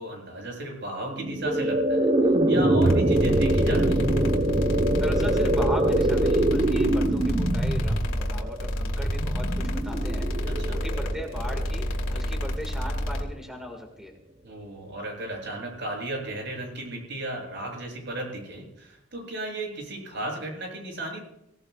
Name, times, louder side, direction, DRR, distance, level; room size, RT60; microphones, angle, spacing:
voice 1, 0.0-2.1 2.5-4.1 10.6-10.8 14.4-21.2, right 1 dB, 65° right, 0 dB, 7.4 m, -35 dB
sound 1, 1.1-12.2, right 1 dB, 30° right, 0.9 m, -24 dB
sound 2, 2.8-13.2, equal, 80° left, 2.8 m, -29 dB
voice 2, 4.9-14.1, equal, ahead, 2 dB, 1.8 m, -37 dB
25.0 x 17.5 x 2.4 m, 0.83 s
head